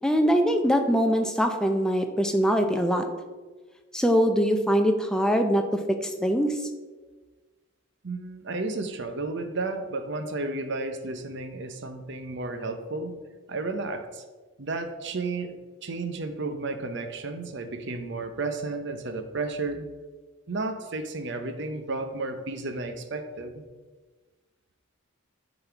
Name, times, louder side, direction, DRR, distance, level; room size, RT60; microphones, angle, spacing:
voice 1, 0.0-3.0 3.9-6.6, equal, 5° left, 5 dB, 0.6 m, -23 dB
voice 2, 8.0-13.1 13.5-14.2 14.6-19.9 20.5-23.6, right 3 dB, 55° right, 7 dB, 0.8 m, -32 dB
10.5 x 4.2 x 4.5 m, 1.3 s
head